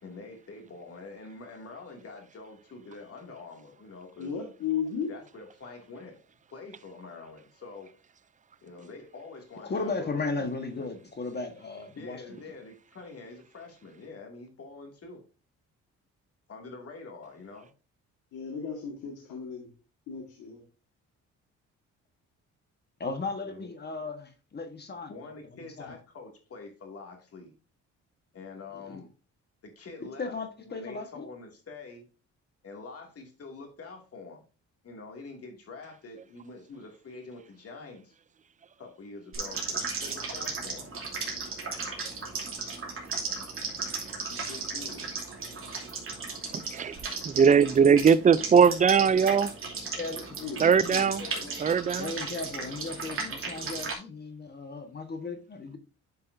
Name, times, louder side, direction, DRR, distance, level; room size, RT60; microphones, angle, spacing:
voice 1, 0.0-4.3 5.1-6.2 6.5-7.9 8.6-10.5 12.0-15.2 16.5-17.7 23.4-23.7 25.1-27.5 28.3-29.1 29.6-32.1 32.6-34.4 34.8-38.1 38.8-40.9 44.3-45.1 50.6-51.5, left 3 dB, 50° left, 2.4 m, -45 dB
voice 2, 4.2-5.1 18.3-19.7 20.1-20.6 50.4-51.1 51.4-51.6, left 7 dB, 80° left, 1.8 m, -35 dB
voice 3, 9.6-12.2 23.0-25.3 25.6-26.0 28.7-29.0 30.2-31.3 49.9-50.3 52.0-55.8, left 3 dB, 35° left, 1.4 m, -36 dB
sound 1, 39.3-53.9, right 4 dB, 45° right, 2.8 m, -36 dB
voice 4, 47.2-49.5 50.6-51.2 51.6-52.1, right 6 dB, 25° right, 0.4 m, -20 dB
9.6 x 5.5 x 2.7 m
cardioid pair, 90°, 30 cm